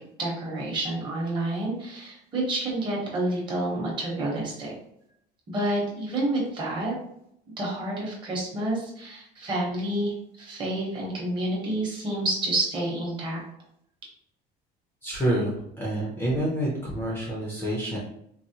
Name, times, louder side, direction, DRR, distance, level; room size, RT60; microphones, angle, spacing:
voice 1, 0.2-4.7 5.5-6.9 7.6-13.4, right 1 dB, 25° right, -4 dB, 1.0 m, -29 dB
voice 2, 15.0-18.0, right 1 dB, 10° left, -4 dB, 0.6 m, -28 dB
4.0 x 2.1 x 2.7 m, 0.74 s
cardioid pair, 180°, 17 cm